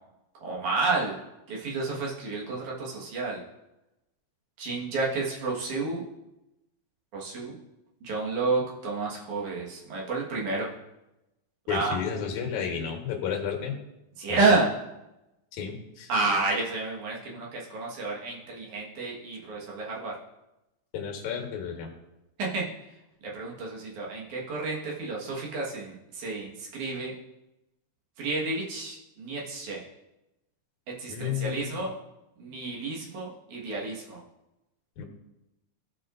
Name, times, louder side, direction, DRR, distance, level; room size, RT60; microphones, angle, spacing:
voice 1, 0.4-1.2 1.5-3.4 4.6-6.0 7.1-7.5 8.0-10.7 11.7-11.9 14.2-14.7 16.1-20.1 22.4-22.6 23.3-27.1 28.2-29.8 31.0-31.9 32.4-34.2, right 3 dB, 75° right, -4 dB, 3.0 m, -30 dB
voice 2, 11.7-13.8 14.3-14.6 15.5-16.1 20.9-21.9 31.1-31.8 35.0-35.1, left 7 dB, 75° left, 1 dB, 2.7 m, -32 dB
15.5 x 5.6 x 2.6 m, 0.93 s
omnidirectional pair, 3.4 m